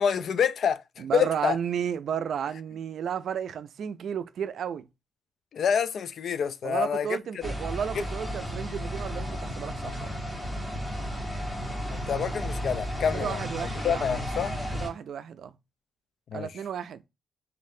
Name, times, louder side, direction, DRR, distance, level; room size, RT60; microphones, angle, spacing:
voice 1, 0.0-1.6 5.5-7.5 7.9-8.0 11.9-14.6 16.3-16.5, left 7 dB, 65° left, 0.3 m, -28 dB
voice 2, 1.0-4.9 6.6-10.2 13.1-14.2 14.7-15.5 16.3-17.1, right 8 dB, 65° right, 0.3 m, -33 dB
sound 1, 7.4-14.9, equal, 10° left, 1.5 m, -33 dB
3.1 x 2.5 x 2.6 m
cardioid pair, 80°, 0 cm